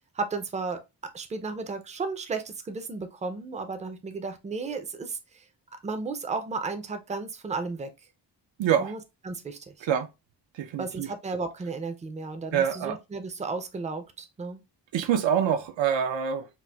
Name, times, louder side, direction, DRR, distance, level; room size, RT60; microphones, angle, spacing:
voice 1, 0.2-0.8 1.1-5.4 5.7-7.9 8.8-9.0 9.2-9.9 10.8-14.6, right 4 dB, 20° right, 0.3 m, -34 dB
voice 2, 8.6-8.9 9.8-10.1 10.6-11.1 12.5-13.0 14.9-16.5, right 8 dB, 85° right, 0.6 m, -25 dB
4.2 x 2.4 x 2.2 m
wide cardioid pair, 145°, 44 cm